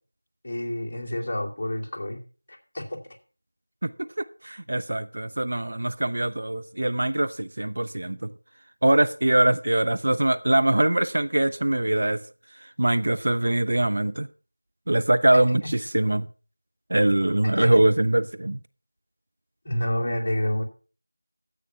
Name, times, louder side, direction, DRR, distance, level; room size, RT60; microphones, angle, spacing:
voice 1, 0.4-2.2 2.5-3.0 15.6-15.7 17.4-17.8 19.6-20.6, left 1 dB, 25° left, 2.7 m, -29 dB
voice 2, 3.8-8.3 8.8-12.2 12.8-14.3 14.9-16.3 16.9-18.6, right 1 dB, 50° right, 0.7 m, -23 dB
13.5 x 8.3 x 5.7 m
figure-of-eight pair, 175°, 0 cm